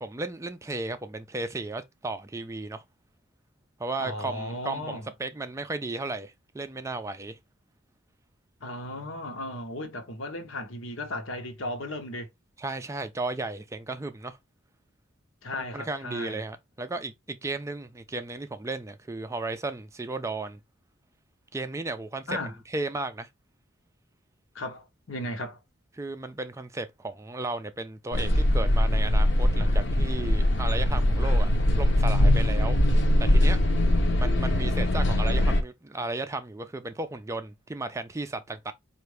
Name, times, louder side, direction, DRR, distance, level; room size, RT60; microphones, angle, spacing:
voice 1, 0.0-2.8 3.8-7.4 12.6-14.4 15.7-20.6 21.5-23.3 25.9-32.8 33.2-33.6 34.2-38.7, right 2 dB, 15° right, 0.3 m, -34 dB
voice 2, 4.0-5.1 8.6-12.3 15.4-16.4 22.3-22.5 24.5-25.6, left 1 dB, 80° left, 1.0 m, -35 dB
sound 1, 28.1-35.6, left 1 dB, 60° left, 0.8 m, -22 dB
4.5 x 2.5 x 3.2 m
head